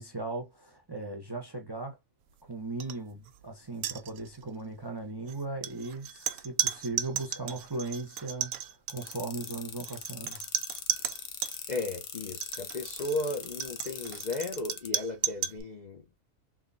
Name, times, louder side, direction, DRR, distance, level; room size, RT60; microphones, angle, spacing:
voice 1, 0.0-2.0 2.4-10.4, right 2 dB, 25° right, 0.6 m, -38 dB
sound 1, 2.8-3.0 3.3-3.4 3.7-4.5 5.3-11.6 12.3-15.6, right 11 dB, 90° right, 1.0 m, -35 dB
sound 2, 8.9-14.9, left 8 dB, 65° left, 1.0 m, -41 dB
voice 2, 11.7-16.1, left 2 dB, 45° left, 0.6 m, -35 dB
3.7 x 3.0 x 2.5 m
omnidirectional pair, 1.5 m